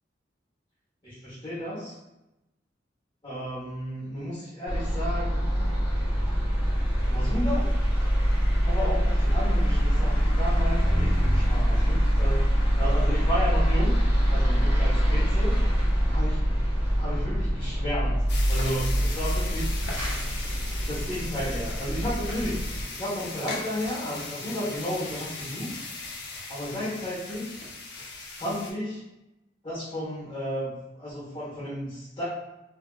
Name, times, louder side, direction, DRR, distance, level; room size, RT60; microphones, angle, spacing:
voice 1, 1.0-2.0 3.2-5.6 7.0-7.7 8.6-12.5 12.8-14.0 14.2-15.6 16.1-16.4 17.0-18.2 18.5-19.7 20.8-22.6 22.9-25.7 26.5-27.6 28.4-29.0 29.6-32.2, equal, 20° left, -10 dB, 1.0 m, -33 dB
sound 1, 4.7-22.8, equal, 10° right, 1.2 m, -24 dB
sound 2, 18.3-28.7, left 3 dB, 60° left, 0.5 m, -38 dB
2.7 x 2.5 x 2.3 m, 0.95 s
head